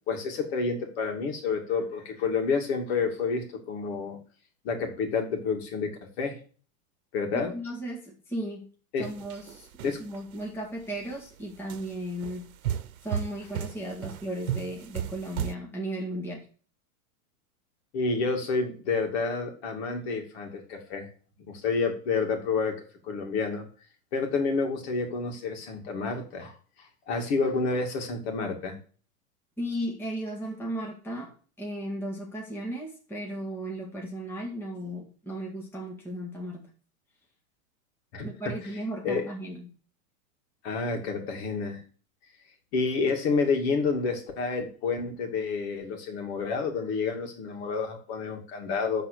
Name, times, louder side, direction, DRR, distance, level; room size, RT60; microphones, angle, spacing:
voice 1, 0.1-4.2 4.6-5.9 6.2-6.4 7.1-7.5 8.9-9.1 9.8-10.0 17.9-21.1 21.5-23.7 24.1-26.5 27.1-28.8 38.1-38.5 39.0-39.3 40.6-41.8 42.7-49.0, left 4 dB, 45° left, 3 dB, 2.6 m, -29 dB
voice 2, 7.3-8.7 9.0-9.7 10.0-12.5 13.0-16.5 29.6-31.3 31.6-36.6 38.2-39.7, right 1 dB, 5° left, -2 dB, 1.9 m, -35 dB
sound 1, 9.0-10.4 11.0-11.2 11.7-15.5, right 9 dB, 80° right, 1.0 m, -35 dB
12.5 x 4.1 x 6.9 m, 0.41 s
supercardioid pair, 150°, 42 cm